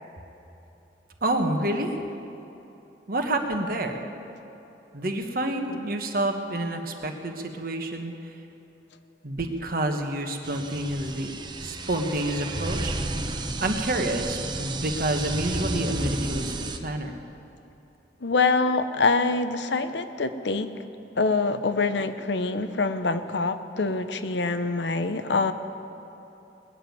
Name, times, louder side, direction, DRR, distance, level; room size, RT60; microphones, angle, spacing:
voice 1, 1.2-1.9 3.1-4.0 4.9-8.1 9.2-12.9 13.6-16.5 16.8-17.2, right 1 dB, 55° right, 4 dB, 1.3 m, -28 dB
sound 1, 10.4-16.8, right 2 dB, 25° right, 0.8 m, -32 dB
voice 2, 18.2-20.7 21.2-25.5, left 3 dB, 85° left, 10 dB, 0.8 m, -25 dB
19.5 x 7.2 x 9.3 m, 3.0 s
head